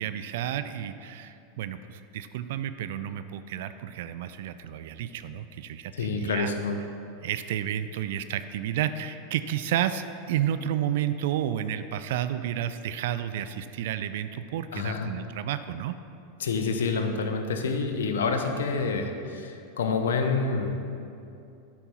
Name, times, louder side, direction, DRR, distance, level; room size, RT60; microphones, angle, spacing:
voice 1, 0.0-6.5 7.2-16.0, right 10 dB, 70° right, 12 dB, 0.3 m, -31 dB
voice 2, 5.9-6.8 14.7-15.1 16.4-20.8, left 4 dB, 80° left, 5 dB, 0.7 m, -28 dB
8.6 x 4.6 x 5.5 m, 2.6 s
hypercardioid pair, 95°, 0 cm